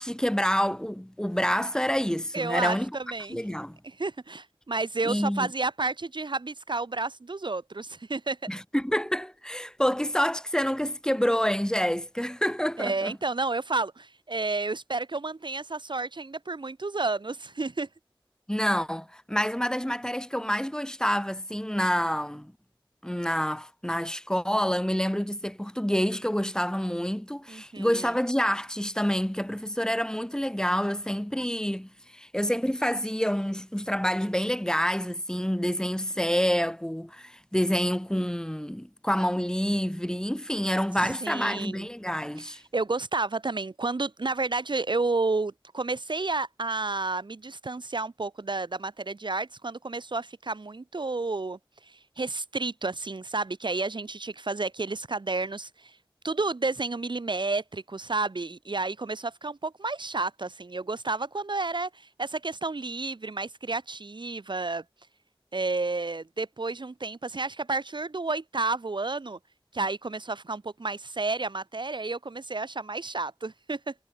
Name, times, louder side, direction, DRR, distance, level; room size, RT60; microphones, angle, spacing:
voice 1, 0.0-2.9 3.3-3.8 5.0-5.5 8.5-13.1 18.5-22.5 23.0-42.6, equal, 10° left, 1.5 m, -28 dB
voice 2, 2.3-3.4 3.8-8.4 12.8-17.9 27.5-28.1 41.0-41.9 42.7-51.6 52.2-55.7 56.2-61.9 62.2-64.8 65.5-69.4 69.7-73.9, right 3 dB, 65° right, 0.9 m, -31 dB
wide cardioid pair, 45°, 9 cm